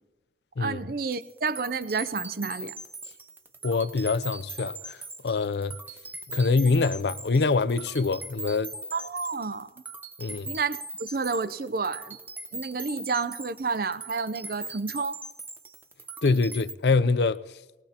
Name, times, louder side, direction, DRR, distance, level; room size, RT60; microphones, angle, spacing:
voice 1, 0.6-2.7 8.9-9.7 10.5-12.2 12.5-15.2, right 4 dB, 55° right, 0.6 m, -30 dB
sound 1, 1.1-16.7, right 2 dB, 10° right, 0.8 m, -41 dB
voice 2, 3.6-5.0 5.2-5.8 6.3-8.7 10.2-10.5 16.2-17.4, left 4 dB, 70° left, 0.5 m, -24 dB
20.5 x 19.0 x 2.9 m
head